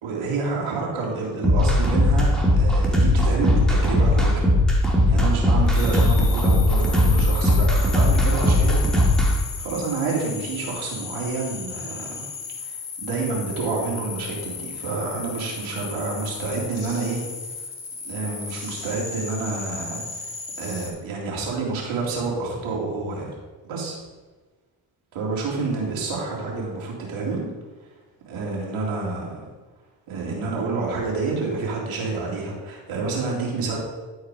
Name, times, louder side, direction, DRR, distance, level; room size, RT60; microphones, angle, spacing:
voice 1, 0.0-4.5 5.1-9.0 9.6-12.2 12.6-17.2 18.0-20.3 20.6-23.3 23.6-24.0 25.1-27.5 28.2-29.4 30.1-33.8, right 3 dB, 75° right, -3 dB, 2.8 m, -28 dB
sound 1, 1.4-9.3, left 1 dB, ahead, 2.4 m, -18 dB
sound 2, 5.7-20.9, left 5 dB, 60° left, 2.1 m, -35 dB
11.0 x 4.8 x 4.8 m, 1.3 s
cardioid pair, 70°, 48 cm